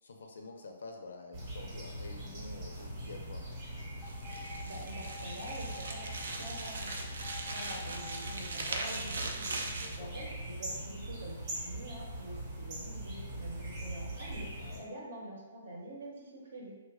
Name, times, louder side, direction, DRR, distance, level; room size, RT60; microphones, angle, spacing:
voice 1, 0.0-3.5 9.8-10.3 14.6-14.9, left 3 dB, 80° left, 3 dB, 0.5 m, -48 dB
sound 1, 1.3-14.8, right 1 dB, 30° right, 0.8 m, -42 dB
sound 2, 4.0-6.7 7.2-8.3 8.8-8.9, left 7 dB, 15° left, 0.3 m, -49 dB
sound 3, 4.1-10.0, right 3 dB, 80° right, 0.5 m, -40 dB
voice 2, 4.6-6.1 6.4-9.6 10.0-16.7, right 1 dB, 60° right, -3 dB, 0.8 m, -46 dB
3.0 x 2.1 x 3.5 m, 1.2 s
hypercardioid pair, 170°, 0 cm